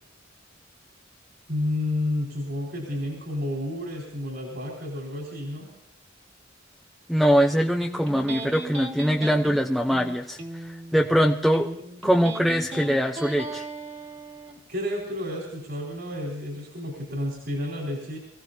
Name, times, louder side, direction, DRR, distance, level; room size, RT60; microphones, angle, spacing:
voice 1, 1.5-5.7 14.7-18.2, left 1 dB, 60° right, -1 dB, 4.6 m, -30 dB
voice 2, 7.1-11.7 12.0-13.6, equal, ahead, 2 dB, 0.7 m, -22 dB
Electric guitar, 7.6-14.6, right 1 dB, 35° right, 2.1 m, -37 dB
25.0 x 16.0 x 2.8 m, 0.82 s
head